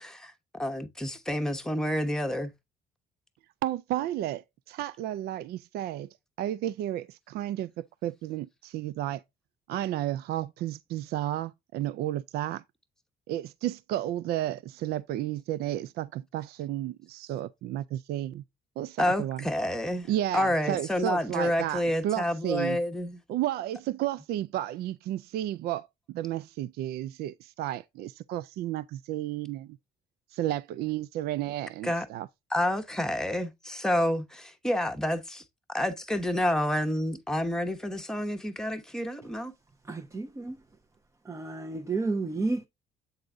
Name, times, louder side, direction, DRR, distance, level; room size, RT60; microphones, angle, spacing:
voice 1, 0.0-2.5 19.0-20.1 20.3-23.2 31.8-32.0 32.5-35.4 35.7-39.5, left 1 dB, 5° left, 1.0 m, -29 dB
voice 2, 3.6-9.2 9.7-12.6 13.3-18.4 18.8-19.5 20.1-22.8 23.3-29.8 30.3-32.3, right 13 dB, 70° right, 0.4 m, -32 dB
voice 3, 39.9-40.6 41.3-42.6, right 3 dB, 15° right, 0.7 m, -31 dB
7.9 x 3.9 x 3.5 m
cardioid pair, 110°, 17 cm